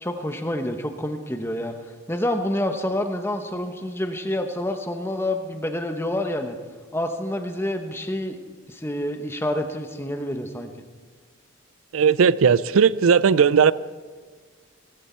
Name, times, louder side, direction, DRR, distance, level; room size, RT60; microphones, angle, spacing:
voice 1, 0.0-1.7 2.1-6.6 6.9-8.4 8.7-10.7, left 1 dB, 10° left, 1.0 m, -28 dB
voice 2, 11.9-13.7, right 6 dB, 75° right, 0.4 m, -17 dB
18.0 x 15.5 x 4.5 m
head